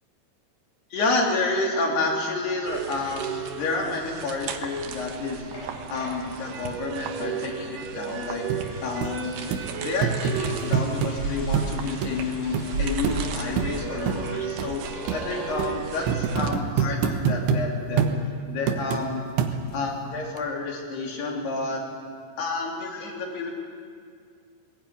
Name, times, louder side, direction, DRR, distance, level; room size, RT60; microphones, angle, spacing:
voice 1, 0.9-3.3 3.6-5.4 5.9-8.4 8.8-9.5 9.8-14.8 15.1-18.0 18.5-19.3 19.7-21.8 22.4-23.6, left 3 dB, 65° left, 0 dB, 4.8 m, -29 dB
sound 1, 2.6-16.5, right 6 dB, 65° right, 2.2 m, -34 dB
sound 2, 5.5-6.7 7.5-15.8 16.1-16.2 16.4-16.7, equal, 40° left, 6.9 m, -44 dB
sound 3, 8.5-8.6 9.0-9.1 9.5-9.6 10.0-11.1 11.5-11.7 12.0-12.1 12.5-12.7 13.0-13.2 13.6-13.7 14.1-14.2 14.6-14.7 15.1-15.2 15.6-15.7 16.1-17.6 18.0-18.2 18.7-19.0 19.4-19.8 20.4-20.5, right 7 dB, 90° right, 3.6 m, -25 dB
20.5 x 18.0 x 9.4 m, 2.1 s
omnidirectional pair, 5.3 m